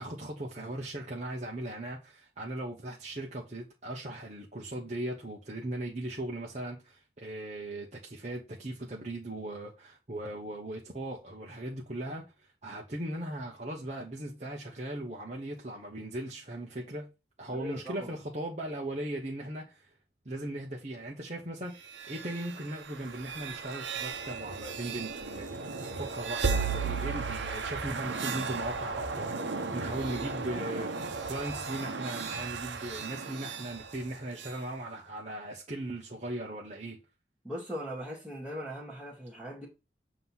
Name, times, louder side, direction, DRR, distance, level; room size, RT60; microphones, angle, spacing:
voice 1, 0.0-12.2 12.6-17.1 17.4-19.9 20.2-37.0, right 1 dB, 40° right, 1.1 m, -38 dB
voice 2, 17.5-18.1 37.4-39.7, equal, 5° right, 1.7 m, -39 dB
sound 1, 21.7-34.6, right 4 dB, 90° right, 0.9 m, -35 dB
7.7 x 3.0 x 5.6 m
head